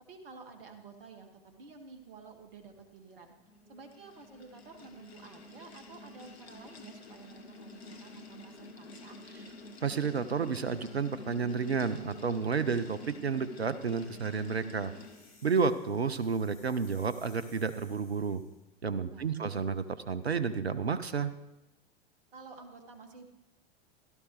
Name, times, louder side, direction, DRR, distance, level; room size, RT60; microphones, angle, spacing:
voice 1, 0.1-3.3 3.7-9.2 19.1-19.5 22.3-23.3, right 4 dB, 65° right, 5 dB, 1.9 m, -51 dB
sound 1, 3.3-15.5, left 3 dB, 80° left, 1.2 m, -49 dB
voice 2, 9.8-14.9 15.4-18.4 18.8-21.3, right 5 dB, 90° right, 14 dB, 0.6 m, -31 dB
sound 2, 14.9-18.6, left 3 dB, 30° left, 5.4 m, -60 dB
15.5 x 12.5 x 3.1 m, 1.0 s
figure-of-eight pair, 90°, 31 cm